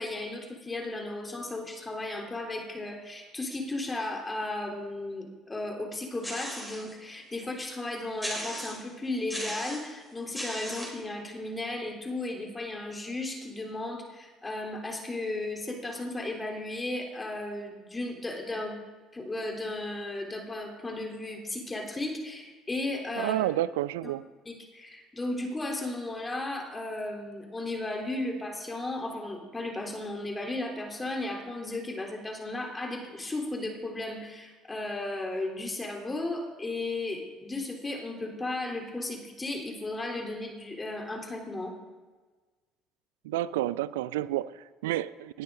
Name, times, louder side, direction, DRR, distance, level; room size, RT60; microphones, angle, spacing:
voice 1, 0.0-18.7 19.1-23.4 24.0-24.1 24.5-41.7, left 2 dB, 20° left, 1 dB, 3.5 m, -35 dB
sound 1, 6.2-6.9 7.4-7.5 8.2-8.9 9.3-9.9 10.3-11.0, equal, 5° left, 5.8 m, -37 dB
voice 2, 23.2-24.3 43.2-45.4, right 14 dB, 80° right, 19 dB, 0.3 m, -30 dB
19.5 x 13.0 x 3.9 m, 1.3 s
hypercardioid pair, 55°, 0 cm